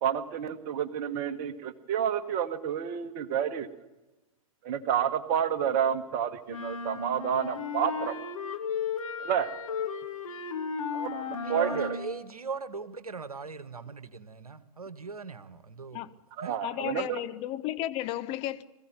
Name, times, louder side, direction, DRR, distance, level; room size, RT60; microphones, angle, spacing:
voice 1, 0.0-3.7 4.6-8.2 9.2-9.5 10.9-11.9 16.4-17.1, right 8 dB, 40° right, 1.7 m, -29 dB
sound 1, 6.5-12.2, left 5 dB, 65° left, 2.3 m, -35 dB
voice 2, 11.3-16.1 16.4-16.6, right 4 dB, 75° right, 1.4 m, -40 dB
voice 3, 16.6-18.6, left 14 dB, 30° left, 0.8 m, -33 dB
21.5 x 15.5 x 9.1 m
figure-of-eight pair, 105°, 19 cm